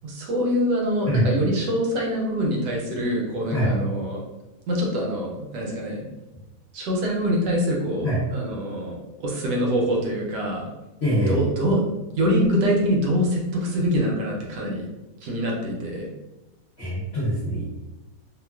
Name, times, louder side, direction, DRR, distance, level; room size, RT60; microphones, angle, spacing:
voice 1, 0.0-4.2 4.7-6.0 6.7-10.7 11.3-14.9 15.2-16.1, equal, 75° right, -2 dB, 1.2 m, -24 dB
voice 2, 11.0-11.4 16.8-17.6, equal, 70° left, -8 dB, 0.6 m, -23 dB
3.0 x 2.2 x 2.2 m, 1.0 s
omnidirectional pair, 2.0 m